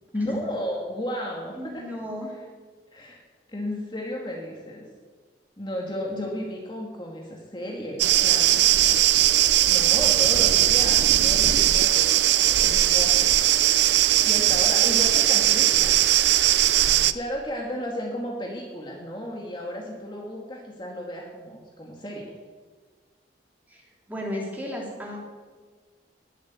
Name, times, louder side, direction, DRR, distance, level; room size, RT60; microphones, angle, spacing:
voice 1, 0.1-1.9 2.3-2.4 2.9-3.2 3.5-4.8 5.6-8.6 9.7-13.3 14.2-16.0 17.1-22.3, equal, 25° left, -1 dB, 2.1 m, -33 dB
voice 2, 1.6-2.3 6.1-6.3 23.7-23.8 24.1-25.2, left 1 dB, 10° right, -2 dB, 3.5 m, -34 dB
sound 1, 8.0-17.1, right 12 dB, 70° right, 0.6 m, -19 dB
20.0 x 8.3 x 8.2 m, 1.5 s
head